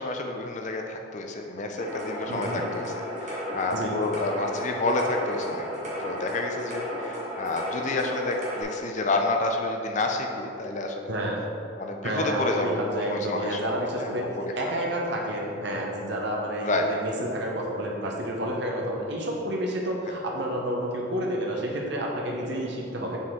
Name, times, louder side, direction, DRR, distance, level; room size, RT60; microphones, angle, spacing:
voice 1, 0.0-5.7 6.0-11.1 11.8-14.5 16.6-16.9 20.0-20.1, left 2 dB, 40° left, 3 dB, 0.4 m, -29 dB
sound 1, 1.8-8.6, equal, 40° right, 1.3 m, -34 dB
voice 2, 2.3-2.6 3.7-3.9 11.1-11.4 12.0-14.2 14.5-23.2, right 1 dB, 60° right, -1 dB, 0.9 m, -30 dB
7.1 x 4.3 x 3.7 m, 2.7 s
head